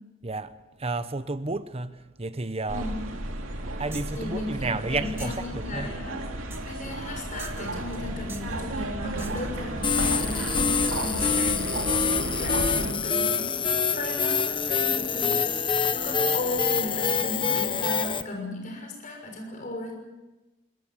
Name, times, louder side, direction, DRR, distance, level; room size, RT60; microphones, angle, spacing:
voice 1, 0.2-2.9 3.8-5.9, right 3 dB, 30° right, 0.9 m, -32 dB
voice 2, 2.7-3.1 4.1-6.2 6.6-10.7 11.0-19.9, left 2 dB, 40° left, 6.4 m, -36 dB
sound 1, 2.7-12.9, right 1 dB, 75° right, 2.6 m, -33 dB
sound 2, 3.9-4.2 5.2-5.5 6.5-6.8 7.4-8.0 8.3-8.6 9.2-9.6 10.0-10.2 10.8-11.1, right 4 dB, 10° right, 1.8 m, -45 dB
sound 3, 9.8-18.2, left 6 dB, 25° left, 0.9 m, -26 dB
26.0 x 20.5 x 7.4 m
head